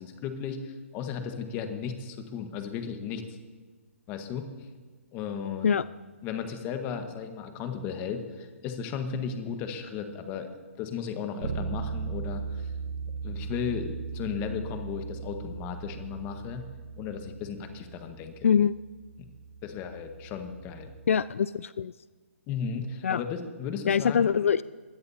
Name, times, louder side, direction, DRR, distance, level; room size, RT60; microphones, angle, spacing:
voice 1, 0.0-3.4 4.1-4.5 5.1-5.7 6.2-10.5 10.8-12.7 13.2-16.7 17.0-18.5 19.2-19.3 19.6-20.9 22.5-24.3, left 7 dB, 25° left, 6 dB, 1.4 m, -35 dB
Bass guitar, 11.4-21.2, right 5 dB, 60° right, 1.2 m, -38 dB
voice 2, 18.4-18.7 21.1-21.9 23.0-23.2 23.9-24.6, left 7 dB, 70° left, 18 dB, 0.3 m, -23 dB
22.0 x 17.0 x 2.9 m, 1.4 s
hypercardioid pair, 150°, 7 cm